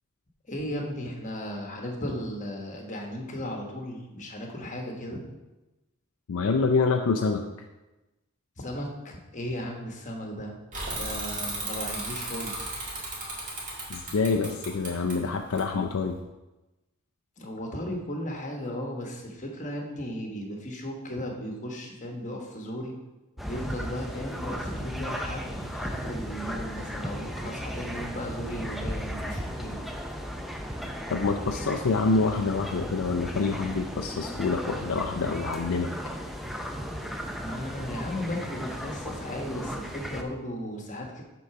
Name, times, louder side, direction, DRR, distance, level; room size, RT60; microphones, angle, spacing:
voice 1, 0.5-5.2 8.6-10.6 10.9-12.7 17.4-23.0 23.4-29.8 37.4-41.2, equal, 35° left, 1 dB, 1.2 m, -36 dB
voice 2, 6.3-7.4 13.9-16.2 31.1-35.9, left 4 dB, 65° left, 4 dB, 0.4 m, -26 dB
Bicycle / Mechanisms, 10.7-16.2, right 2 dB, 35° right, 1.9 m, -35 dB
sound 1, 23.4-40.2, equal, ahead, 0.5 m, -35 dB
8.1 x 3.8 x 5.8 m, 1.1 s
head